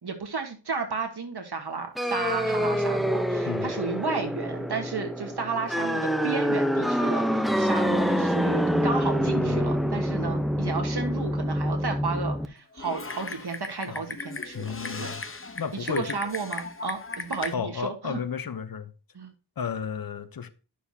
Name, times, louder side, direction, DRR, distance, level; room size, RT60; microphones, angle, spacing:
voice 1, 0.0-15.1 15.8-18.2 19.1-19.3, right 4 dB, 55° right, 1.4 m, -33 dB
sound 1, 2.0-12.5, equal, ahead, 0.7 m, -26 dB
voice 2, 9.2-9.9 13.9-14.0 14.5-15.2 15.6-16.2 17.5-18.9 19.6-20.5, left 7 dB, 50° left, 0.8 m, -33 dB
Typing, 12.8-17.5, left 3 dB, 25° left, 0.9 m, -37 dB
9.9 x 6.4 x 2.8 m
cardioid pair, 45°, 47 cm